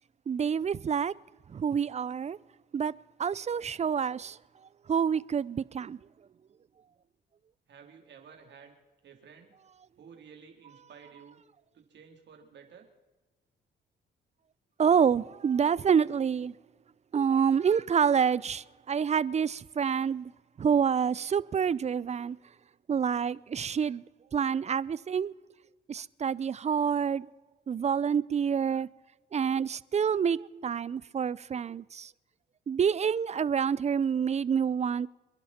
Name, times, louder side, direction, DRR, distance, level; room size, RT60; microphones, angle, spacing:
voice 1, 0.3-1.1 1.5-2.4 2.7-2.9 3.2-4.4 4.9-6.0 14.8-16.5 17.1-20.3 20.6-22.4 22.9-24.0 24.3-25.3 25.9-27.3 27.7-28.9 29.3-32.1 32.7-35.1, right 7 dB, 35° right, 0.5 m, -27 dB
voice 2, 7.7-8.7 9.0-9.5 10.0-11.4 11.7-12.9, right 6 dB, 60° right, 3.5 m, -53 dB
28.0 x 11.0 x 4.3 m
cardioid pair, 90°, 20 cm